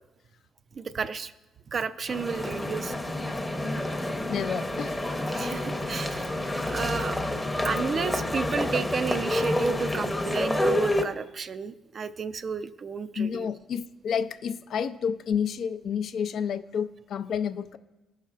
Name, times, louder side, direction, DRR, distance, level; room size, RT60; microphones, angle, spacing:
voice 1, 0.8-1.3 1.7-2.9 5.3-6.3 6.7-7.2 7.6-13.5, right 5 dB, 45° right, 13 dB, 0.4 m, -32 dB
sound 1, 2.1-11.0, left 1 dB, 10° left, 0.7 m, -28 dB
voice 2, 4.3-5.0 8.2-8.3 13.2-17.8, left 7 dB, 70° left, 10 dB, 0.4 m, -30 dB
15.0 x 5.6 x 2.4 m, 1.1 s
cardioid pair, 90°, 0 cm